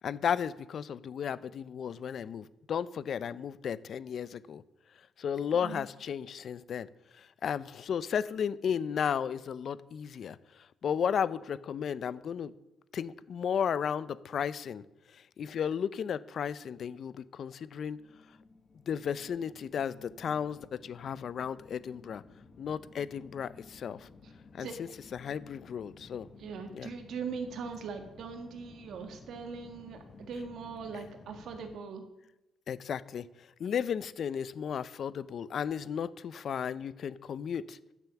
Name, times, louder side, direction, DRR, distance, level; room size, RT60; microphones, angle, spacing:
voice 1, 0.0-4.6 5.2-6.9 7.1-10.4 10.8-12.5 12.9-14.8 15.1-18.0 18.9-22.2 22.6-24.1 24.5-26.3 26.7-26.9 32.7-33.3 33.6-37.8, left 7 dB, 60° left, 0.5 m, -34 dB
sound 1, 17.9-31.8, left 3 dB, 35° left, 1.0 m, -55 dB
voice 2, 26.4-32.0, right 5 dB, 70° right, 1.7 m, -41 dB
9.6 x 6.9 x 7.0 m
cardioid pair, 90°, 0 cm